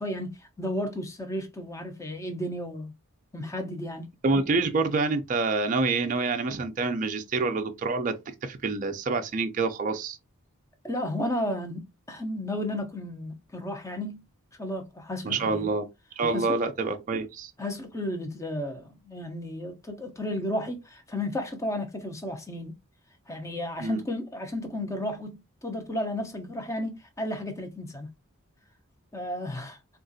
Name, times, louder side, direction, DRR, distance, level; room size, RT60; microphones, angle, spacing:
voice 1, 0.0-2.9 3.3-4.1 10.8-14.2 14.6-15.7 16.3-16.5 17.6-22.7 23.3-28.1 29.1-29.8, left 1 dB, 15° left, 0.6 m, -33 dB
voice 2, 4.2-10.2 15.2-15.9 16.2-17.5 23.8-24.0, right 3 dB, 35° right, 0.4 m, -27 dB
3.7 x 2.4 x 2.6 m
head